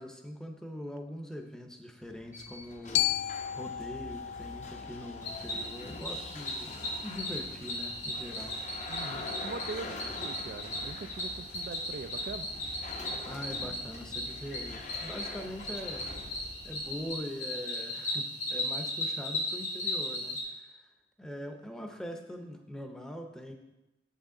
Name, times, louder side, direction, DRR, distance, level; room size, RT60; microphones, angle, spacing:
voice 1, 0.0-6.8 7.0-8.6 13.3-16.2 16.6-20.9 21.2-23.5, equal, 5° left, 4 dB, 0.7 m, -42 dB
sound 1, 2.0-17.2, left 2 dB, 40° left, 0.7 m, -45 dB
Glockenspiel, 2.9-7.1, left 13 dB, 70° left, 0.3 m, -35 dB
Cricket, 5.2-20.4, left 1 dB, 85° left, 3.6 m, -37 dB
voice 2, 8.9-12.5, right 4 dB, 55° right, 10 dB, 0.3 m, -42 dB
8.3 x 8.3 x 3.8 m, 0.98 s
head